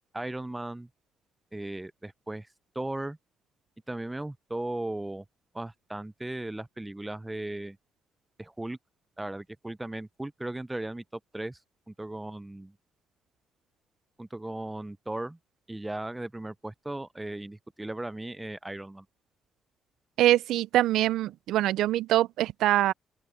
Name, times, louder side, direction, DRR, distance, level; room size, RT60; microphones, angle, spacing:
voice 1, 0.1-0.9 1.5-2.5 2.7-3.2 3.9-5.2 5.5-7.8 8.4-8.8 9.2-11.6 11.9-12.7 14.2-15.4 15.7-19.0, right 1 dB, 10° right, 0.6 m, -37 dB
voice 2, 20.2-22.9, right 14 dB, 85° right, 0.4 m, -24 dB
open air
cardioid pair, 90°, 0 cm